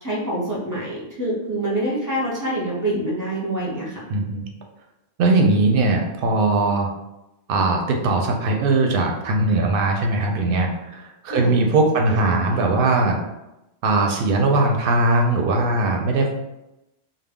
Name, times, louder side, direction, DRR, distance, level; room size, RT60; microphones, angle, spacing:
voice 1, 0.0-4.0 11.3-11.5 12.0-12.6, right 1 dB, 20° right, -5 dB, 0.6 m, -26 dB
voice 2, 4.1-4.4 5.2-6.9 7.5-13.2 13.8-16.3, right 2 dB, 65° right, 2 dB, 0.7 m, -20 dB
2.2 x 2.0 x 3.5 m, 0.93 s
omnidirectional pair, 1.1 m